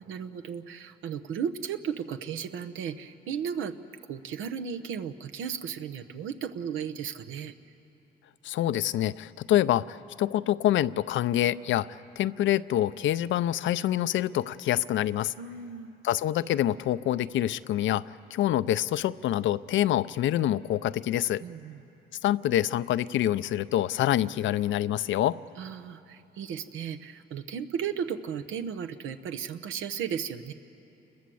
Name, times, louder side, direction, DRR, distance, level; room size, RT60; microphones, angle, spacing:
voice 1, 0.0-3.8 4.1-7.5 15.4-15.9 21.4-21.8 25.6-30.5, right 7 dB, 85° right, 8 dB, 1.0 m, -35 dB
voice 2, 8.4-15.3 16.0-18.1 18.3-21.4 22.2-25.4, left 12 dB, 75° left, 16 dB, 0.6 m, -26 dB
28.5 x 21.0 x 7.8 m, 3.0 s
cardioid pair, 90°, 20 cm